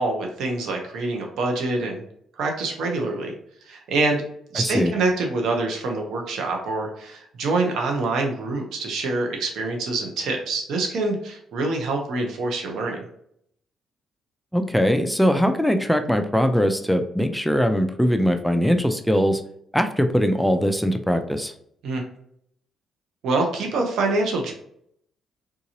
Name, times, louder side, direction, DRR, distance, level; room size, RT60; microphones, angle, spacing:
voice 1, 0.0-2.0 2.4-3.3 3.7-4.2 4.5-13.0 21.8-22.0 23.2-24.5, right 3 dB, 75° right, 2 dB, 0.8 m, -25 dB
voice 2, 4.5-4.9 14.5-19.4 19.7-21.5, equal, ahead, 6 dB, 0.4 m, -21 dB
3.7 x 2.8 x 2.8 m, 0.69 s
cardioid pair, 90°, 0 cm